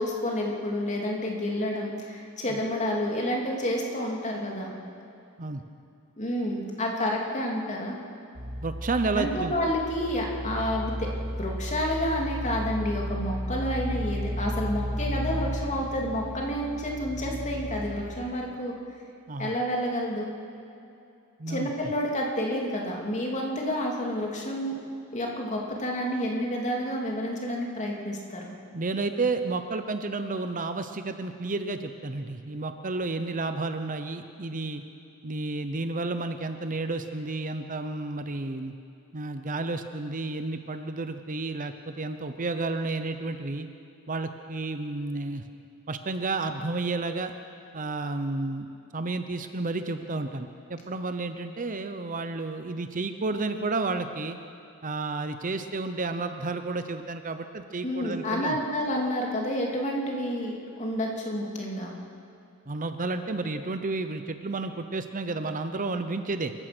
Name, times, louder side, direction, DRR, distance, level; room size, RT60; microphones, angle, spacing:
voice 1, 0.0-4.7 6.2-8.0 9.2-11.1 11.4-18.7 19.4-20.3 21.5-24.7 25.1-28.5 57.8-61.9, equal, 35° left, -1 dB, 3.0 m, -29 dB
sound 1, 8.3-18.3, equal, 60° right, 4.5 m, -34 dB
voice 2, 8.6-9.5 19.3-19.5 21.4-21.7 28.7-34.8 35.2-38.7 39.1-43.7 44.1-45.4 45.9-47.3 47.7-48.7 48.9-54.4 54.8-58.6 62.7-66.5, right 3 dB, 35° right, 8 dB, 0.8 m, -31 dB
27.5 x 15.5 x 6.2 m, 2.6 s
head